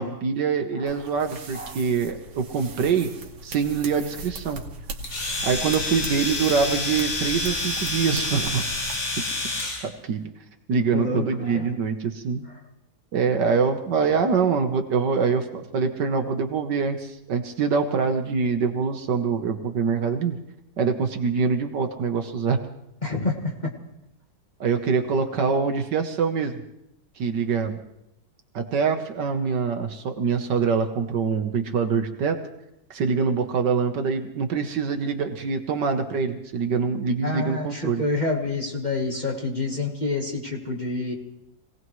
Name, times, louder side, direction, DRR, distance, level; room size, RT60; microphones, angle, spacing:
voice 1, 0.0-3.1 3.4-4.6 5.4-8.7 9.8-10.2 10.7-12.4 13.1-20.4 20.8-22.6 24.6-26.6 27.2-27.8 28.5-32.4 32.9-38.0, right 5 dB, 65° right, 6 dB, 1.6 m, -24 dB
sound 1, 0.9-8.9, right 3 dB, 85° right, 2.2 m, -39 dB
Domestic sounds home sounds, 5.0-9.9, left 2 dB, 65° left, 2.8 m, -28 dB
voice 2, 10.9-11.7 23.0-23.5 37.2-41.1, left 3 dB, 25° left, -1 dB, 1.5 m, -28 dB
25.5 x 18.0 x 3.2 m, 0.83 s
omnidirectional pair, 2.1 m